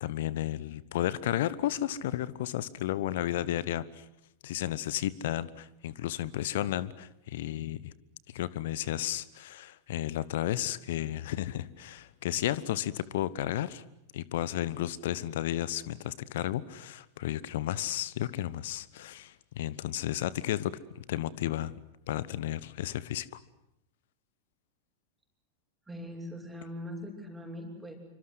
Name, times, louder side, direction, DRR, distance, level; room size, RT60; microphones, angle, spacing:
voice 1, 0.0-4.0 4.4-7.9 8.3-13.8 14.1-21.7 22.1-23.3, left 13 dB, 55° left, 20 dB, 1.0 m, -33 dB
voice 2, 25.9-28.0, left 1 dB, 10° right, 3 dB, 6.2 m, -41 dB
27.5 x 25.0 x 8.0 m, 0.81 s
figure-of-eight pair, 90°, 0 cm